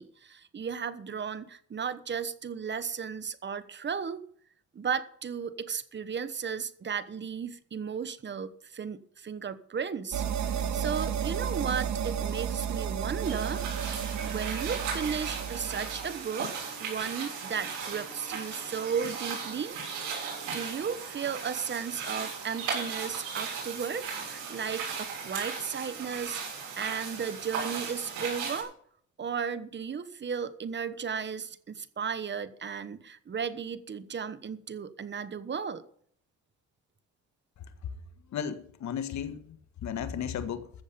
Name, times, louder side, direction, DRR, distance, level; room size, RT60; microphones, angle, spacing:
voice 1, 0.0-4.2 4.7-10.2 10.7-13.6 14.2-16.5 16.8-19.8 20.1-26.4 26.7-28.7 29.2-35.8, right 6 dB, 35° right, 13 dB, 1.2 m, -35 dB
sound 1, 10.1-16.2, right 8 dB, 65° right, 1.5 m, -32 dB
sound 2, 13.2-28.6, right 5 dB, 90° right, 7.2 m, -37 dB
voice 2, 37.6-38.0 38.3-40.7, left 8 dB, 70° left, 10 dB, 1.6 m, -35 dB
14.5 x 7.4 x 6.8 m, 0.62 s
cardioid pair, 90°, 30 cm